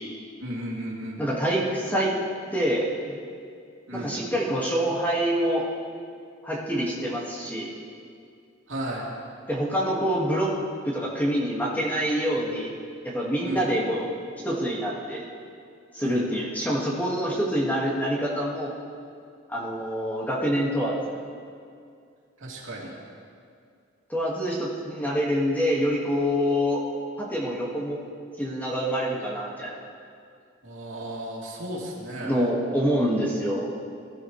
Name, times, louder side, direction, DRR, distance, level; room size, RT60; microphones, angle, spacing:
voice 1, 0.4-1.2 3.9-4.2 8.7-9.1 13.4-13.7 16.0-16.3 22.4-22.9 30.6-32.4, right 1 dB, 80° right, -4 dB, 2.9 m, -34 dB
voice 2, 1.2-2.1 2.5-3.2 3.9-5.7 6.4-7.7 9.5-10.5 10.8-12.7 13.0-14.1 14.4-15.2 15.9-18.7 19.5-21.0 24.1-26.8 27.2-28.0 28.4-29.8 32.2-33.7, equal, 10° left, -4 dB, 1.8 m, -26 dB
20.5 x 12.5 x 3.3 m, 2.3 s
head